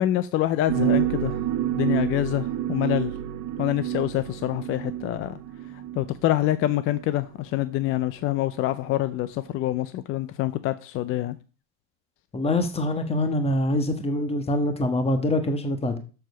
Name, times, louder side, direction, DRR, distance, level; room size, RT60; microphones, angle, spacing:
voice 1, 0.0-1.4 1.7-3.1 3.6-5.4 5.9-11.4, left 14 dB, 30° left, 0.4 m, -26 dB
sound 1, 0.7-7.1 7.8-8.0 8.8-9.0 9.6-9.7, right 12 dB, 40° right, 1.0 m, -29 dB
voice 2, 12.3-16.0, left 1 dB, 10° left, 1.3 m, -24 dB
7.0 x 6.1 x 6.4 m
supercardioid pair, 120°, 49 cm